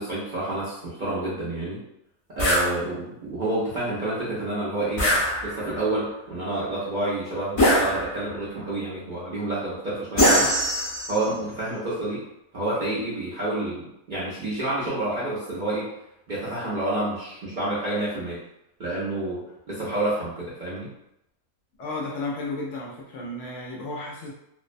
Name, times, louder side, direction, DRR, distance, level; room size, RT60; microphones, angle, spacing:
voice 1, 0.0-1.8 2.4-10.5 11.1-12.2 12.5-15.9 16.3-18.4 18.8-20.9, right 2 dB, 50° right, -9 dB, 0.6 m, -29 dB
sound 1, 2.4-2.7 5.0-5.8 7.6-8.4 10.2-11.3, equal, 25° left, 0.7 m, -22 dB
voice 2, 21.8-24.3, left 2 dB, 70° left, -3 dB, 0.8 m, -33 dB
2.6 x 2.1 x 2.4 m, 0.82 s
omnidirectional pair, 1.5 m